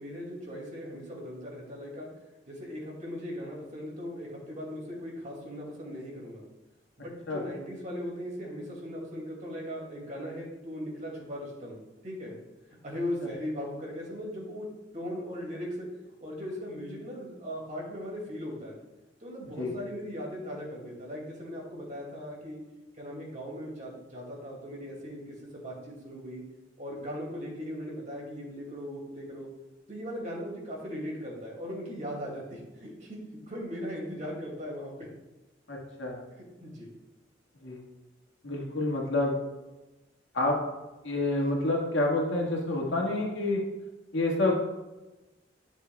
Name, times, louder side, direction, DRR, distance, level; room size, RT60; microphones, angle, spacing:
voice 1, 0.0-2.1 2.5-6.4 7.0-12.4 12.8-14.7 14.9-15.9 16.2-18.8 19.2-22.6 22.9-26.4 26.8-29.5 29.9-35.1 36.6-36.9, equal, 40° right, -2 dB, 2.4 m, -38 dB
voice 2, 35.7-36.2 37.6-37.8 38.4-39.4 40.3-40.6 41.0-43.6 44.1-44.5, left 2 dB, 75° left, -1 dB, 1.8 m, -28 dB
11.5 x 7.1 x 2.3 m, 1.1 s
head